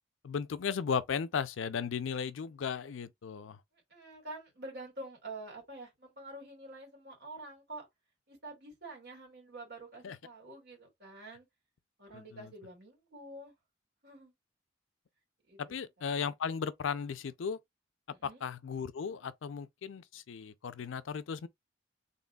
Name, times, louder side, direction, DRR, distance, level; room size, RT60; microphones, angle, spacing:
voice 1, 0.2-3.6 10.0-10.2 12.1-12.5 15.6-17.6 18.4-21.5, left 6 dB, 85° left, 0.4 m, -36 dB
voice 2, 3.9-7.9 8.3-11.5 12.0-13.5 14.0-14.3 15.5-16.1 18.1-18.4, right 2 dB, 55° right, 2.6 m, -47 dB
4.1 x 3.4 x 2.3 m
head